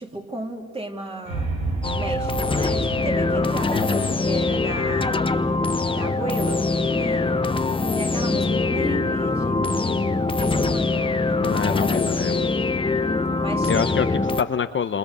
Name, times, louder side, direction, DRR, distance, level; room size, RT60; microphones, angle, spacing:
voice 1, 0.0-1.5 1.9-5.3 5.9-7.4 7.9-11.6 13.3-14.2, right 2 dB, 20° right, 1 dB, 3.4 m, -34 dB
sound 1, 1.2-7.4, right 3 dB, 85° right, 6.6 m, -32 dB
sound 2, 1.8-14.4, left 3 dB, 15° left, 0.9 m, -23 dB
voice 2, 3.7-4.2 11.4-12.5 13.7-14.1 14.4-15.0, left 7 dB, 40° left, 8 dB, 0.9 m, -26 dB
27.5 x 27.0 x 6.9 m, 2.1 s
cardioid pair, 90°, 30 cm